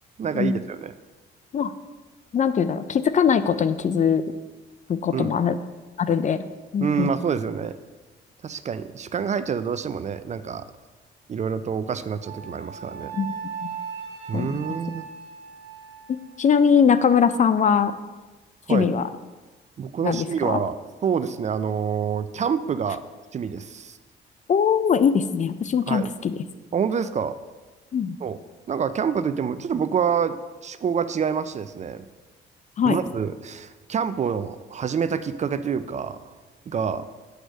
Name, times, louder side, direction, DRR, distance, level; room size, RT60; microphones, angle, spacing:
voice 1, 0.2-0.9 5.1-5.3 6.8-7.7 8.4-10.6 11.3-13.1 14.3-15.1 18.7-18.9 19.8-20.8 21.0-23.0 23.3-24.0 25.9-26.1 26.7-27.3 28.2-28.4 28.7-30.4 30.6-32.0 32.8-36.2 36.7-37.0, right 7 dB, 35° right, 13 dB, 0.4 m, -27 dB
voice 2, 2.3-4.2 4.9-5.6 6.0-6.4 6.7-7.1 13.1-13.7 14.3-14.6 16.4-17.9 18.7-19.1 20.0-20.6 24.5-26.4 27.9-28.1 32.8-33.0, left 7 dB, 40° left, 13 dB, 0.4 m, -21 dB
Wind instrument woodwind instrument, 12.2-16.6, right 7 dB, 70° right, 1.5 m, -38 dB
7.9 x 3.3 x 6.2 m, 1.3 s
cardioid pair, 90°, 20 cm